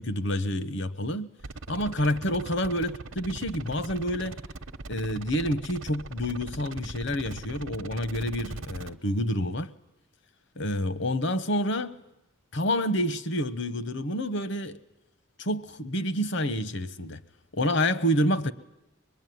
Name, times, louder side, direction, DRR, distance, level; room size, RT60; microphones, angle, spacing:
voice 1, 0.0-1.3 1.7-4.4 4.9-9.7 10.6-12.0 12.5-14.8 15.4-17.2 17.5-18.5, equal, 60° left, 1.0 m, -28 dB
sound 1, 1.4-8.9, right 3 dB, 75° right, 0.9 m, -40 dB
24.0 x 21.5 x 9.3 m
head